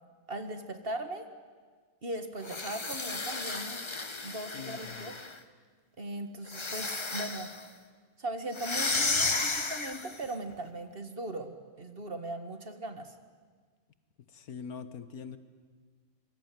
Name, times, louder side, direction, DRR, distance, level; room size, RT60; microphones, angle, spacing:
voice 1, 0.3-1.3 2.0-3.8 4.2-5.2 6.0-7.5 8.2-13.2, right 2 dB, 40° right, 8 dB, 2.0 m, -39 dB
sound 1, 2.4-5.4 6.5-7.6 8.5-10.2, left 3 dB, 20° left, 1.0 m, -33 dB
voice 2, 4.5-5.1 14.3-15.4, left 6 dB, 75° left, 12 dB, 1.7 m, -43 dB
26.0 x 23.5 x 9.3 m, 1.5 s
omnidirectional pair, 1.5 m